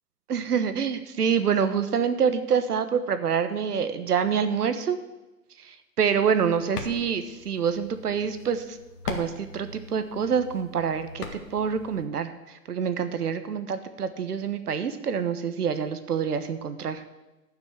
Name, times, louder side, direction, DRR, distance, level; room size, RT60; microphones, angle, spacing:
voice 1, 0.3-5.0 5.6-8.8 9.0-11.2 11.5-17.0, right 7 dB, 70° right, 10 dB, 1.3 m, -26 dB
sound 1, 6.1-12.0, left 4 dB, 75° left, 1.9 m, -40 dB
12.0 x 6.3 x 6.8 m, 1.1 s
hypercardioid pair, 180°, 48 cm